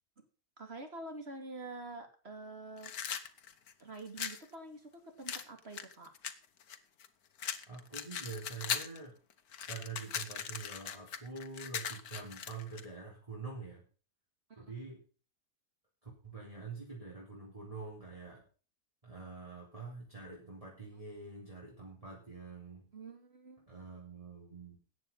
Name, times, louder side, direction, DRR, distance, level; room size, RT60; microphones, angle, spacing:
voice 1, 0.6-2.9 3.8-4.9 5.2-6.1 14.5-14.7 22.9-23.7, right 2 dB, 40° right, 5 dB, 3.0 m, -46 dB
sound 1, 2.8-4.4 5.3-7.1 7.4-9.0 9.3-12.9, left 8 dB, 65° left, 1.6 m, -39 dB
voice 2, 7.7-9.2 9.7-13.9 14.6-15.0 16.0-18.4 19.0-22.9 23.7-24.8, right 4 dB, 20° right, -4 dB, 3.9 m, -46 dB
14.0 x 9.2 x 5.6 m, 0.38 s
omnidirectional pair, 1.7 m